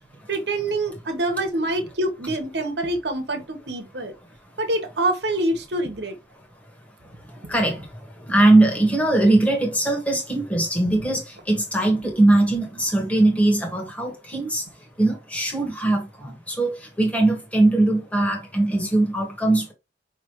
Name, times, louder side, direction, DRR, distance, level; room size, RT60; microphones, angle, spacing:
voice 1, 0.3-4.1 4.6-6.1, right 1 dB, 70° right, 1.2 m, -25 dB
voice 2, 8.3-14.6 15.0-19.7, right 2 dB, 10° left, 1.4 m, -20 dB
5.6 x 3.1 x 3.0 m
head